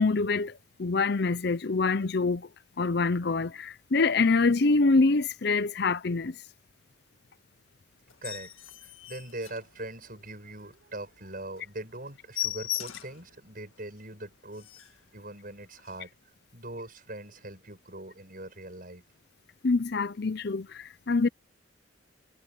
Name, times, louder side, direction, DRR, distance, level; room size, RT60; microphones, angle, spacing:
voice 1, 0.0-2.5 2.8-6.4 19.6-21.3, left 3 dB, 55° left, 0.6 m, -25 dB
sound 1, 8.1-10.2 10.7-10.8 11.2-11.3 11.6-11.7 12.0-13.3 13.8-13.9 14.2-14.3 14.5-15.0 15.8-16.0, left 14 dB, 85° left, 1.9 m, -37 dB
voice 2, 8.2-8.5 8.8-14.7 15.1-16.1 16.5-19.0, right 1 dB, 45° right, 8.0 m, -41 dB
head